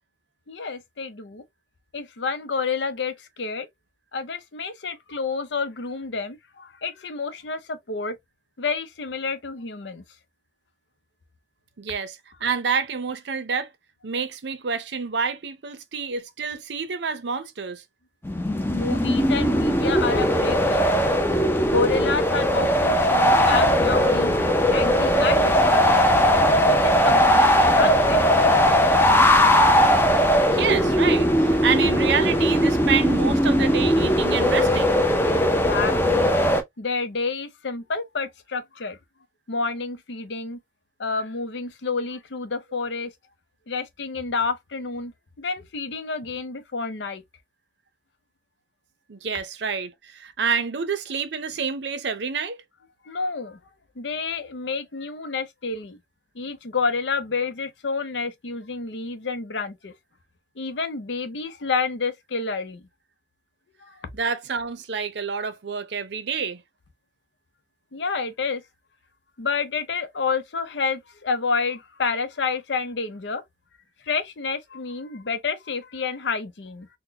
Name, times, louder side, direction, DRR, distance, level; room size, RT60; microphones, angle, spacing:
voice 1, 0.5-1.4 1.9-3.7 4.1-8.2 8.6-10.0 18.6-21.1 21.6-24.3 24.7-26.1 26.6-28.4 35.2-36.4 36.8-39.0 39.5-40.6 41.0-43.1 43.7-47.2 53.0-53.6 54.0-56.0 56.3-59.9 60.6-62.8 63.8-64.1 67.9-68.6 69.4-73.4 74.0-76.9, left 4 dB, 85° left, 0.7 m, -29 dB
voice 2, 11.8-13.7 14.0-17.8 30.5-35.0 49.1-52.6 64.1-66.6, right 6 dB, 80° right, 0.6 m, -28 dB
sound 1, 18.2-36.6, equal, 15° left, 0.5 m, -19 dB
4.0 x 2.2 x 2.7 m
head